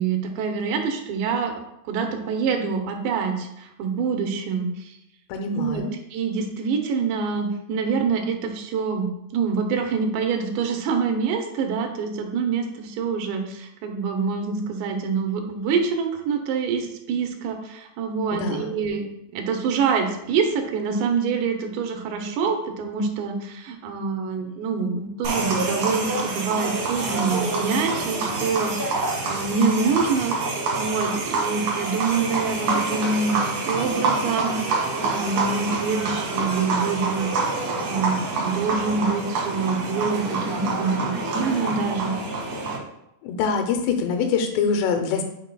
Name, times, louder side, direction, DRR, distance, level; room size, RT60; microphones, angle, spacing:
voice 1, 0.0-1.5 1.9-4.9 5.6-5.8 6.1-19.1 19.3-30.4 30.8-33.4 33.7-34.6 35.0-37.4 37.8-42.2, right 5 dB, 80° right, 4 dB, 3.0 m, -26 dB
voice 2, 5.3-5.9 18.3-18.6 43.2-45.2, left 5 dB, 80° left, 6 dB, 2.8 m, -24 dB
sound 1, 25.2-42.8, right 3 dB, 60° right, 2.0 m, -27 dB
8.0 x 5.6 x 2.2 m, 0.83 s
omnidirectional pair, 5.1 m